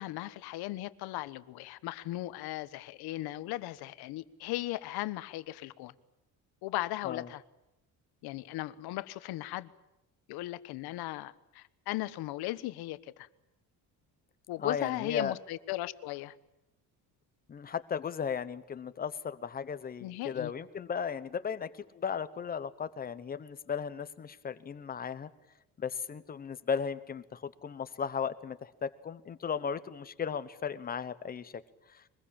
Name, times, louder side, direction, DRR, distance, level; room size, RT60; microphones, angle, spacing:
voice 1, 0.0-5.9 6.6-7.4 8.2-9.7 10.3-13.3 14.5-16.3 20.0-20.5, left 17 dB, 85° left, 14 dB, 1.3 m, -37 dB
voice 2, 14.6-15.3 17.5-25.3 25.8-31.6 31.9-32.0, left 7 dB, 25° left, 13 dB, 1.1 m, -36 dB
24.0 x 21.0 x 8.8 m, 0.90 s
cardioid pair, 175°, 37 cm